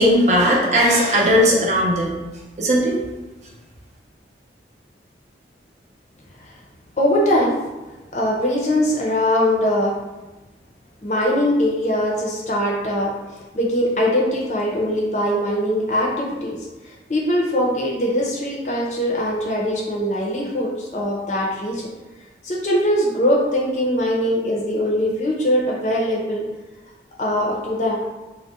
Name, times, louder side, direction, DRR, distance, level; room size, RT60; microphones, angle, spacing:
voice 1, 0.0-2.2 2.6-2.9, equal, 40° right, -2 dB, 0.5 m, -17 dB
voice 2, 7.0-7.6 8.1-9.9 11.0-13.1 13.5-16.6 16.8-21.9 22.4-26.5 27.2-28.0, equal, 40° left, -3 dB, 0.6 m, -21 dB
2.4 x 2.1 x 3.9 m, 1.1 s
head